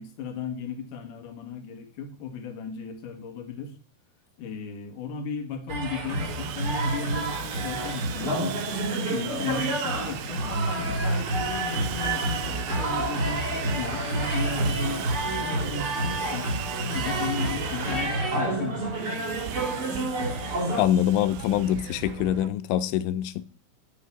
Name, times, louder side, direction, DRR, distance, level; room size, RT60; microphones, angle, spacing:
voice 1, 0.0-3.7 4.4-8.6 9.1-15.1 15.4-16.5 16.8-19.8, left 5 dB, 55° left, 2.8 m, -35 dB
sound 1, 5.7-20.8, right 1 dB, 30° right, 2.7 m, -29 dB
Sawing, 6.0-22.5, right 13 dB, 90° right, 3.3 m, -38 dB
sound 2, 7.3-16.3, right 3 dB, 60° right, 4.0 m, -44 dB
voice 2, 20.8-23.4, left 11 dB, 90° left, 3.2 m, -24 dB
12.0 x 6.4 x 9.5 m
omnidirectional pair, 5.4 m